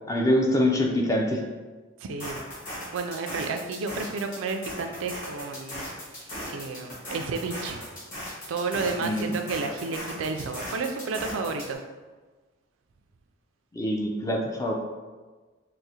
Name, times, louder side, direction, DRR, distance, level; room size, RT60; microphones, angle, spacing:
voice 1, 0.1-1.4 9.0-9.4 13.7-14.7, left 1 dB, 15° left, 0 dB, 0.3 m, -24 dB
voice 2, 2.0-2.4 2.9-5.9 6.2-7.8 8.5-11.8, right 4 dB, 70° right, 5 dB, 0.3 m, -31 dB
sound 1, 2.2-11.8, equal, 40° left, 1.3 m, -38 dB
4.6 x 2.1 x 2.7 m, 1.3 s
head